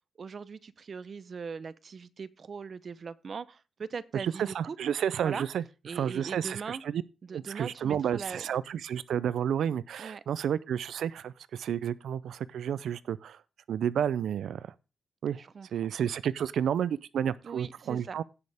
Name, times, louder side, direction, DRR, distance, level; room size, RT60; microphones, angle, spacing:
voice 1, 0.2-4.8 5.2-5.4 5.8-6.8 7.3-8.5 10.0-10.2 15.4-15.7 17.4-18.2, right 5 dB, 45° right, 0.6 m, -40 dB
voice 2, 4.1-5.6 5.9-7.0 7.3-13.4 13.7-14.7 15.2-15.4 15.7-18.2, right 9 dB, 85° right, 0.4 m, -31 dB
16.5 x 6.4 x 3.4 m
wide cardioid pair, 130°, 0 cm